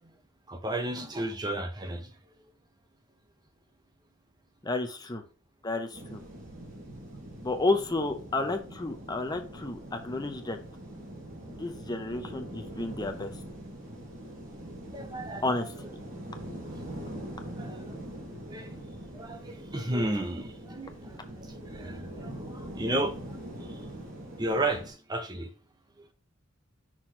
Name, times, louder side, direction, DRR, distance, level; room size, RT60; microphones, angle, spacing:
voice 1, 0.5-2.1 14.9-15.7 17.6-18.2 18.5-18.7 19.1-23.2 23.7-23.8 24.4-25.5, right 1 dB, 20° right, 0.7 m, -33 dB
voice 2, 4.6-5.2 5.6-6.2 7.4-10.6 11.6-13.3 15.4-15.9, left 2 dB, 20° left, 0.7 m, -31 dB
sound 1, 5.9-24.9, right 1 dB, 40° right, 2.0 m, -43 dB
6.1 x 3.1 x 5.8 m
head